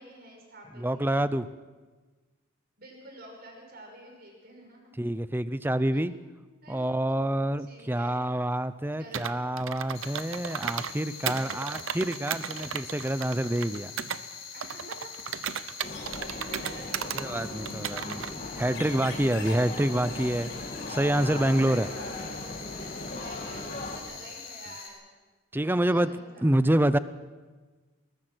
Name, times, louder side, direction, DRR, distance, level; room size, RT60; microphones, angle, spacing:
voice 1, 0.0-1.1 2.8-4.8 5.9-6.0 6.6-6.9 7.6-8.2 8.9-9.3 10.2-11.9 14.5-15.0 16.2-17.4 21.8-22.3 23.1-25.0 25.6-26.6, right 1 dB, 50° right, 1 dB, 5.9 m, -49 dB
voice 2, 0.8-1.5 5.0-6.1 6.7-13.9 17.1-18.2 18.6-21.9 25.5-26.1 26.4-27.0, right 1 dB, 10° right, 14 dB, 0.6 m, -27 dB
Computer keyboard, 9.1-10.9 11.3-14.2 14.6-17.3 17.7-18.3, right 8 dB, 70° right, 0.8 m, -35 dB
sound 1, 9.9-24.9, left 5 dB, 65° left, 5.1 m, -43 dB
sound 2, 15.8-24.0, left 2 dB, 40° left, 2.6 m, -38 dB
21.0 x 20.5 x 6.2 m, 1.3 s
head